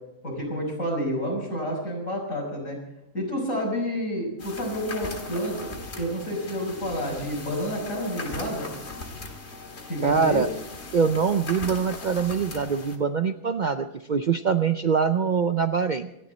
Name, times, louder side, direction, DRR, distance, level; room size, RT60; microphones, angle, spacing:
voice 1, 0.2-2.8 3.1-8.7 9.9-10.4, equal, 70° left, -1 dB, 6.1 m, -29 dB
sound 1, 4.4-13.0, left 3 dB, 50° left, 2.1 m, -39 dB
voice 2, 10.0-10.5 10.9-16.1, right 6 dB, 50° right, 8 dB, 0.6 m, -24 dB
27.0 x 10.5 x 4.2 m, 0.88 s
omnidirectional pair, 1.4 m